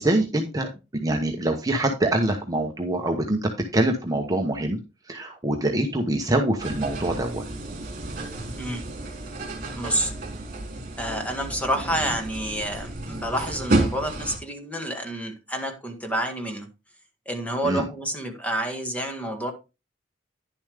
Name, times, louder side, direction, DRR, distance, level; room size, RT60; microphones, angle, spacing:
voice 1, 0.0-4.8 5.0-7.4 17.6-17.9, right 1 dB, 20° right, 2 dB, 1.0 m, -25 dB
sound 1, 6.6-14.4, right 2 dB, 45° right, 2.7 m, -31 dB
voice 2, 9.8-10.1 11.0-16.7 17.3-19.5, right 1 dB, 10° left, 4 dB, 1.8 m, -29 dB
10.5 x 7.0 x 3.4 m, 0.28 s
head